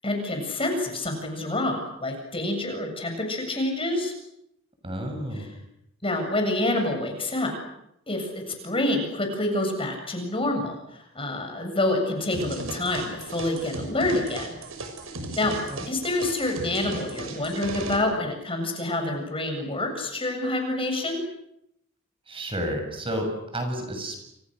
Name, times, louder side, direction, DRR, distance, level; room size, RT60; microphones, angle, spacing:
voice 1, 0.0-4.1 5.3-5.5 6.0-7.5 8.1-14.5 15.4-15.5 15.9-21.2, left 1 dB, 25° left, 4 dB, 7.6 m, -27 dB
voice 2, 4.8-5.4 15.7-15.8 22.3-24.2, equal, 25° right, 5 dB, 7.4 m, -31 dB
sound 1, 12.3-18.0, right 2 dB, 85° right, 6.3 m, -36 dB
29.5 x 29.5 x 6.6 m, 0.79 s
head